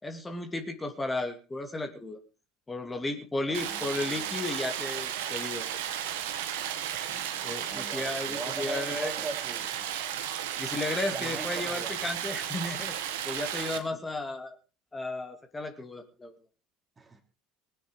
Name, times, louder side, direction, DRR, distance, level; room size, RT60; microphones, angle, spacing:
voice 1, 0.0-2.2 2.7-5.6 7.1-9.1 10.6-12.9 13.2-14.6 14.9-16.4, left 2 dB, 15° left, 5 dB, 2.7 m, -34 dB
voice 2, 3.5-4.4 7.7-9.8 11.1-11.9 17.0-17.2, right 3 dB, 25° right, 6 dB, 3.2 m, -40 dB
Stream, 3.5-13.8, right 10 dB, 70° right, 1.8 m, -34 dB
21.0 x 9.6 x 4.9 m, 0.35 s
figure-of-eight pair, 65°, 0 cm